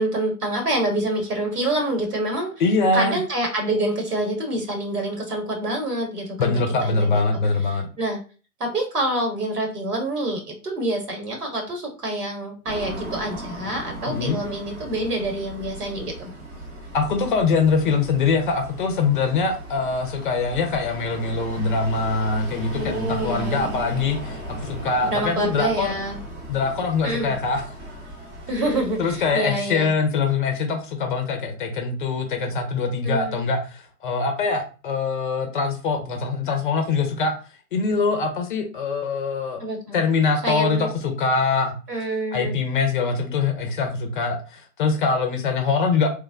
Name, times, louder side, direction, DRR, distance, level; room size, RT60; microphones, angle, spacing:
voice 1, 0.0-2.5 2.9-6.5 6.8-7.2 7.7-8.2 8.6-16.3 22.7-23.7 25.0-26.2 27.0-27.3 28.5-29.9 33.0-33.4 39.6-40.0 40.4-40.9 41.9-42.6, right 1 dB, 75° right, 2 dB, 1.5 m, -27 dB
voice 2, 2.6-3.2 6.4-7.9 14.1-14.4 16.9-25.9 26.5-27.6 29.0-37.3 37.7-39.6 39.9-41.8 42.3-46.1, left 4 dB, 35° left, 5 dB, 0.5 m, -23 dB
sound 1, 12.7-29.3, right 1 dB, 15° right, 0.4 m, -37 dB
3.2 x 2.0 x 3.4 m, 0.36 s
figure-of-eight pair, 120°, 46 cm